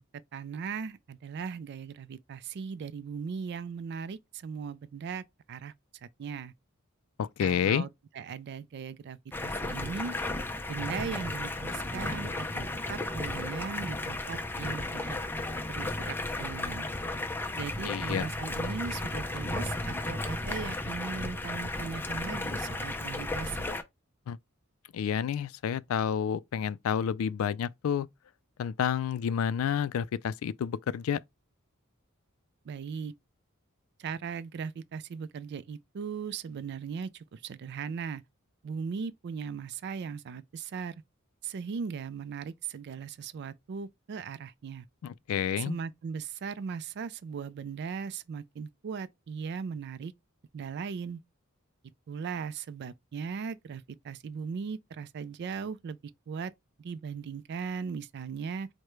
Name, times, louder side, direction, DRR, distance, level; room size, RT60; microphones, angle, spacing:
voice 1, 0.3-5.7 6.0-6.5 7.4-7.9 8.1-10.1 10.7-15.2 15.7-16.9 17.6-23.7 32.7-33.1 34.0-38.2 38.6-40.9 41.4-44.9 45.6-50.1 50.5-51.2 52.1-56.0 56.3-56.5 56.8-58.7, right 6 dB, 50° right, 0.3 m, -38 dB
voice 2, 7.2-7.8 17.9-18.3 24.3-24.4 24.9-28.1 28.6-31.2 45.0-45.8, left 8 dB, 70° left, 0.3 m, -29 dB
Stream, 9.3-23.8, left 2 dB, 10° left, 0.4 m, -34 dB
4.8 x 2.1 x 4.4 m
head